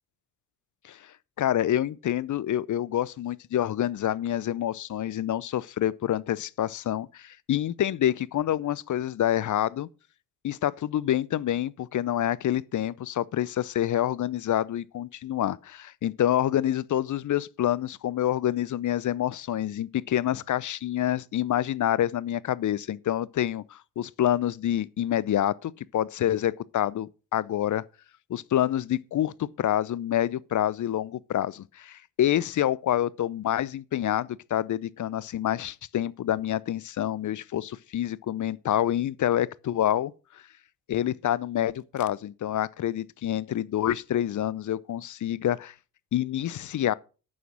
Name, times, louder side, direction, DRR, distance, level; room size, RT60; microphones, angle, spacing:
voice 1, 0.8-9.9 10.4-27.8 28.3-40.1 40.9-45.7 46.1-46.9, left 11 dB, 40° left, 0.7 m, -27 dB
9.2 x 8.5 x 6.1 m
figure-of-eight pair, 45°, 49 cm